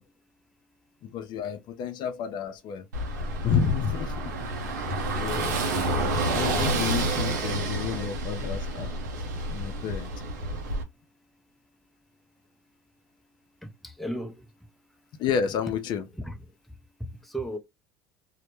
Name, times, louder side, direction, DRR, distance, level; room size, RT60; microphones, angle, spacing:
voice 1, 1.0-2.8 3.4-4.1 4.7-4.9 5.2-5.6 6.3-8.9 9.5-10.1 15.2-16.0, left 7 dB, 50° left, 0.4 m, -30 dB
Car passing by / Engine, 2.9-10.8, right 2 dB, 90° right, 0.6 m, -29 dB
voice 2, 13.6-14.5 16.1-16.5 17.0-17.6, right 1 dB, ahead, 0.5 m, -35 dB
2.1 x 2.0 x 2.9 m
hypercardioid pair, 80°, 10 cm